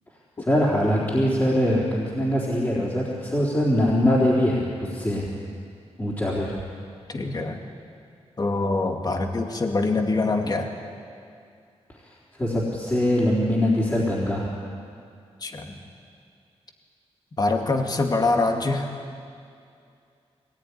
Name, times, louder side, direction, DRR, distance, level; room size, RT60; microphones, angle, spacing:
voice 1, 0.4-5.3 6.0-6.6 12.4-14.5, left 1 dB, 20° left, -6 dB, 3.9 m, -22 dB
voice 2, 7.1-7.6 8.4-10.7 15.4-15.7 17.4-18.9, left 3 dB, 35° left, 4 dB, 2.2 m, -24 dB
23.0 x 19.0 x 9.9 m, 2.4 s
wide cardioid pair, 115°, 11 cm